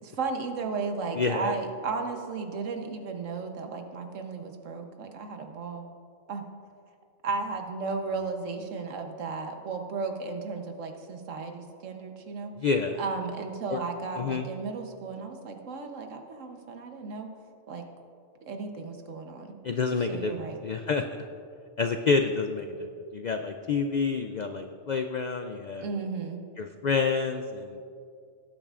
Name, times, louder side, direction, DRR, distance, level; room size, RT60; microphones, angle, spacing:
voice 1, 0.0-5.8 6.3-6.4 7.2-12.5 13.0-17.3 17.7-17.8 18.4-19.5 20.0-20.6 25.8-26.4, right 4 dB, 80° right, 5 dB, 1.3 m, -34 dB
voice 2, 1.1-1.5 12.6-13.0 13.7-13.8 14.2-14.5 19.6-20.3 20.6-21.2 21.8-22.9 23.1-25.9 26.6-27.8, left 4 dB, 80° left, 6 dB, 0.4 m, -28 dB
18.0 x 8.7 x 2.5 m, 2.4 s
omnidirectional pair, 1.3 m